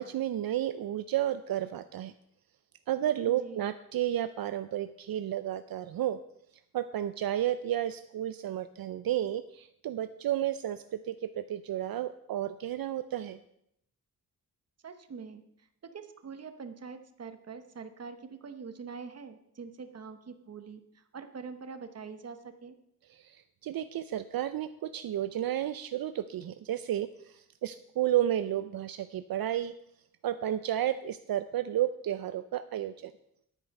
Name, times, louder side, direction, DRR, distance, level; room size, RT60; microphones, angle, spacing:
voice 1, 0.0-2.1 2.9-6.2 6.7-13.4 23.1-29.7 30.2-33.1, right 12 dB, 70° right, 11 dB, 0.5 m, -32 dB
voice 2, 3.3-3.7 14.8-15.4 15.8-22.7, right 5 dB, 45° right, 8 dB, 1.0 m, -44 dB
10.5 x 9.0 x 5.4 m, 0.76 s
wide cardioid pair, 140°, 37 cm